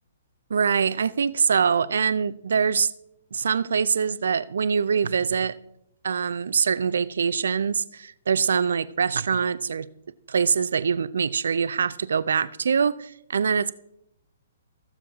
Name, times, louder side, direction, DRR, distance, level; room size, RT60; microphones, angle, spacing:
voice 1, 0.5-2.9 3.3-5.6 6.0-9.9 10.3-13.7, right 6 dB, 65° right, 0.4 m, -24 dB
15.5 x 6.9 x 3.4 m
figure-of-eight pair, 125°, 0 cm